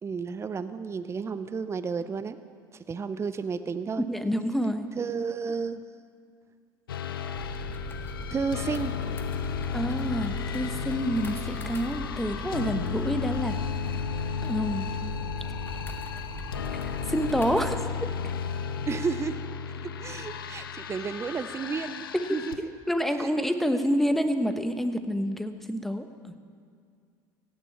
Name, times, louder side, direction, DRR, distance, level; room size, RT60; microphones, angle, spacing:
voice 1, 0.0-2.4 2.7-4.0 5.0-5.8 8.3-9.0 18.9-19.4 20.0-22.0 22.3-22.6 23.2-23.3, right 5 dB, 25° right, 12 dB, 0.6 m, -32 dB
voice 2, 4.1-4.9 9.7-13.6 14.4-14.9 16.7-16.8 17.0-17.8 18.2-18.3 22.3-22.4 22.9-26.4, equal, ahead, 8 dB, 1.1 m, -28 dB
sound 1, 6.9-22.6, left 6 dB, 85° left, 0.7 m, -34 dB
sound 2, 7.3-17.8, left 1 dB, 20° left, 1.7 m, -40 dB
16.5 x 7.1 x 8.6 m, 2.3 s
hypercardioid pair, 70°, 12 cm